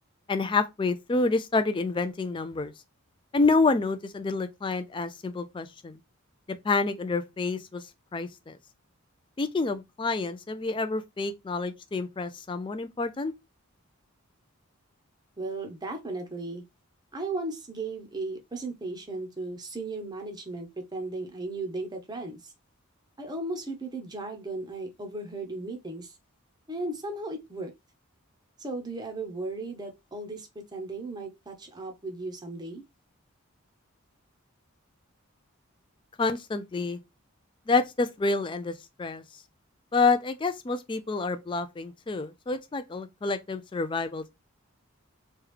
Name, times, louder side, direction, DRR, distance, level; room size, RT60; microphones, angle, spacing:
voice 1, 0.3-2.7 3.3-6.0 6.6-7.8 8.1-8.6 9.4-13.3 36.2-37.0 37.7-38.7 39.0-39.2 39.9-44.3, left 3 dB, 20° left, 0.3 m, -28 dB
voice 2, 15.4-16.6 17.1-22.5 23.2-26.1 26.7-27.7 28.6-32.8, right 2 dB, 20° right, 0.6 m, -36 dB
3.1 x 2.3 x 3.2 m
head